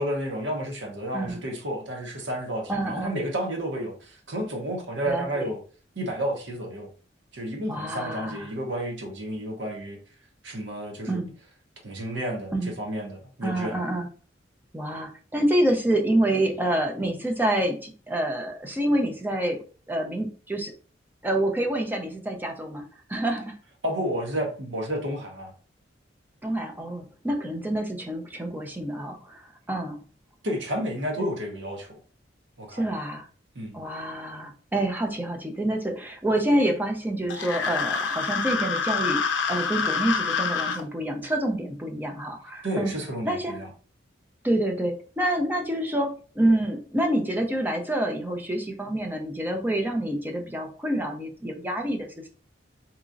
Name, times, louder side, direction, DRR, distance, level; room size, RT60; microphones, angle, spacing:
voice 1, 0.0-5.6 6.0-6.9 7.3-10.0 10.4-11.2 11.8-13.7 23.8-25.5 30.4-32.0 32.6-32.8 33.5-33.7 42.6-43.7, equal, 75° right, 0.9 m, -31 dB
voice 2, 2.7-3.2 5.1-5.5 7.7-8.5 11.1-11.3 12.5-12.7 13.4-14.1 14.7-19.6 19.9-20.7 21.2-23.6 26.4-30.0 31.2-31.3 32.7-33.3 33.7-42.9 43.2-43.6 44.4-52.3, right 1 dB, 10° right, 0.6 m, -27 dB
sound 1, 37.3-40.8, left 5 dB, 75° left, 0.5 m, -27 dB
3.7 x 3.0 x 2.5 m
head